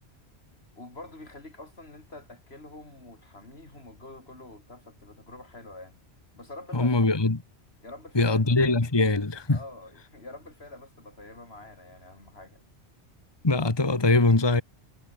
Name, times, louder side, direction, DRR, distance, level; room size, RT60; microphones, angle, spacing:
voice 1, 0.8-6.0 6.3-7.0 7.8-8.6 9.5-12.6, left 2 dB, 70° left, 4.7 m, -46 dB
voice 2, 6.7-7.4 8.1-9.6 13.4-14.6, left 2 dB, 25° left, 1.5 m, -22 dB
omnidirectional pair, 1.1 m